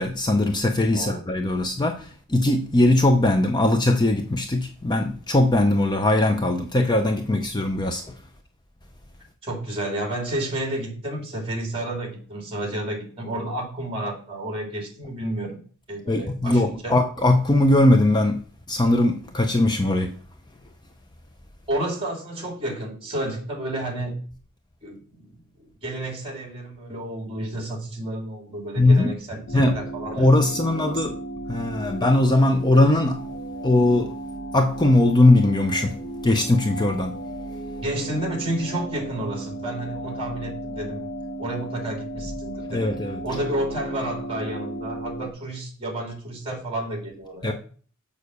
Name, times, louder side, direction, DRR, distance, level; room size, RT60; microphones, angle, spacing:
voice 1, 0.0-8.0 16.1-18.4 18.7-20.1 28.8-29.1 29.5-29.8 30.2-31.1 31.5-33.3 33.6-34.1 34.5-36.0 36.2-37.2 42.7-43.2 47.4-47.5, left 2 dB, 20° left, 0.6 m, -20 dB
voice 2, 9.4-15.6 15.9-17.0 21.7-24.2 24.8-30.3 30.8-31.1 37.8-41.0 41.4-42.9 43.2-47.5, right 1 dB, 25° right, 2.8 m, -31 dB
sound 1, 29.5-45.3, right 1 dB, 50° left, 0.9 m, -35 dB
6.6 x 5.3 x 6.8 m
head